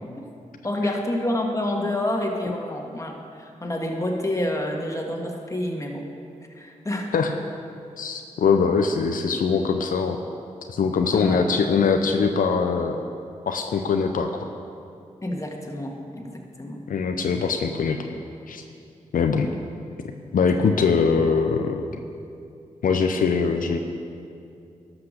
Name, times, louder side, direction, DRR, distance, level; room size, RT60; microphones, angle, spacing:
voice 1, 0.6-6.0 6.5-7.1 11.1-11.5 15.2-16.8, left 1 dB, 20° left, 1 dB, 1.7 m, -28 dB
voice 2, 8.0-10.2 10.7-13.0 13.5-14.5 16.9-18.0 18.5-18.6 19.1-19.5 20.3-21.9 22.8-23.8, left 5 dB, 80° left, 5 dB, 0.6 m, -22 dB
12.0 x 5.9 x 6.5 m, 2.5 s
cardioid pair, 50°, 14 cm